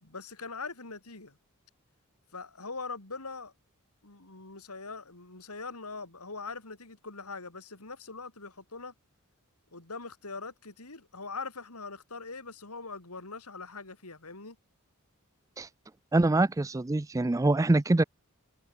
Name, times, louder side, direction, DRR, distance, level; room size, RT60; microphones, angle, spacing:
voice 1, 0.0-1.4 2.3-3.5 4.0-8.9 9.7-14.6, left 4 dB, 85° left, 3.9 m, -42 dB
voice 2, 16.1-18.0, right 2 dB, 15° right, 0.4 m, -24 dB
head